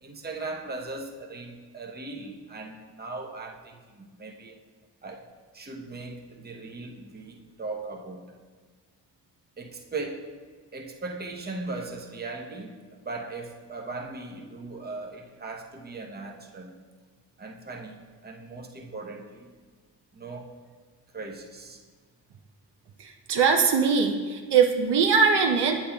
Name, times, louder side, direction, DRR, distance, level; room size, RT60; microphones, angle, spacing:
voice 1, 0.0-4.5 5.0-5.3 5.5-8.4 9.6-10.3 10.7-16.8 17.4-19.5 20.1-20.5 21.1-21.8, right 3 dB, 20° right, 0 dB, 0.8 m, -38 dB
voice 2, 23.0-25.8, right 5 dB, 65° right, 2 dB, 0.7 m, -21 dB
8.3 x 7.3 x 2.3 m, 1.5 s
cardioid pair, 65°, 43 cm